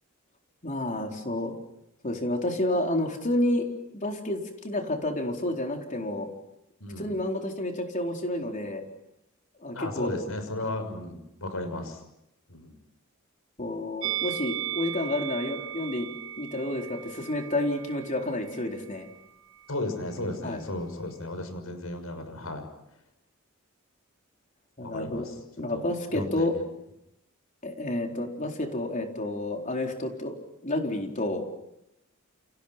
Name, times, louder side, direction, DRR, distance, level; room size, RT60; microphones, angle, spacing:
voice 1, 0.6-1.5 2.0-3.7 3.9-6.3 7.0-8.9 9.6-10.1 13.6-16.1 16.4-19.1 20.4-20.6 24.8-25.3 25.6-26.5 27.6-30.4 30.6-31.4, left 1 dB, 40° left, 2 dB, 4.3 m, -30 dB
voice 2, 6.8-7.2 9.7-12.0 12.5-12.7 19.7-22.7 24.8-25.3 25.7-25.9 26.1-26.6, left 2 dB, 80° left, 8 dB, 6.4 m, -34 dB
Musical instrument, 14.0-19.2 19.5-19.7, right 12 dB, 65° right, 1.4 m, -37 dB
30.0 x 29.5 x 5.9 m, 0.84 s
head